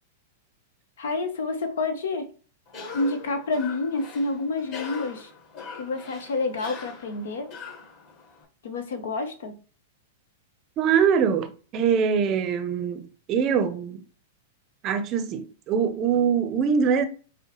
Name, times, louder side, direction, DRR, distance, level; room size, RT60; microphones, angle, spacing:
voice 1, 1.0-2.3 2.9-5.3 5.8-7.5 8.6-9.6, left 3 dB, 75° left, 0.8 m, -28 dB
Cough, 2.7-8.4, left 5 dB, 40° left, 2.0 m, -42 dB
voice 2, 10.8-14.0 14.8-17.0, right 7 dB, 35° right, 0.6 m, -23 dB
5.3 x 2.1 x 3.1 m
hypercardioid pair, 115°, 0 cm